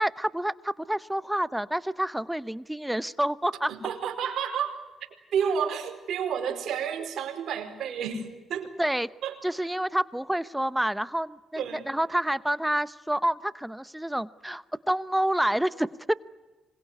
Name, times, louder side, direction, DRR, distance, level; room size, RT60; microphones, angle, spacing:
voice 1, 0.0-3.7 8.8-9.1 9.4-16.1, right 1 dB, 5° right, 16 dB, 0.8 m, -28 dB
voice 2, 3.7-4.8 5.3-8.7 9.2-9.3 11.6-11.9, right 7 dB, 70° right, 3 dB, 4.6 m, -30 dB
26.5 x 21.5 x 9.7 m, 1.2 s
supercardioid pair, 65°, 0 cm